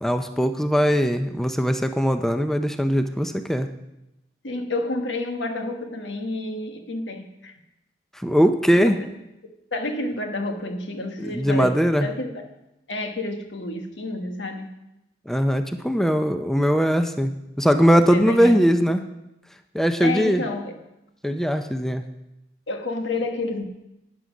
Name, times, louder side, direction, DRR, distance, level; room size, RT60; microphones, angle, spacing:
voice 1, 0.0-3.7 8.1-9.0 11.2-12.1 15.3-19.0 19.7-20.4 21.2-22.0, equal, ahead, 7 dB, 0.5 m, -20 dB
voice 2, 4.4-7.6 8.7-9.0 9.7-12.4 12.9-14.7 18.1-18.8 20.0-20.7 22.7-23.7, left 2 dB, 90° left, 5 dB, 1.4 m, -29 dB
12.5 x 9.7 x 5.1 m, 0.92 s
head